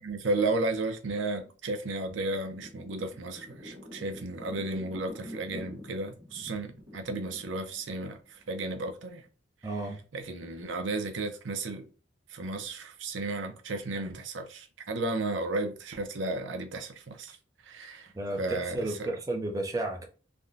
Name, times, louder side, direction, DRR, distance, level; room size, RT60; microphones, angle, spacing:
voice 1, 0.0-9.2 10.1-11.9 12.3-17.4 17.6-18.1 18.4-18.9, right 2 dB, 90° right, 0.6 m, -33 dB
sound 1, 2.5-8.7 9.0-9.3, left 1 dB, 60° right, 1.3 m, -47 dB
voice 2, 9.6-10.0 18.1-20.1, right 2 dB, 20° right, 0.6 m, -32 dB
3.5 x 2.2 x 2.5 m
head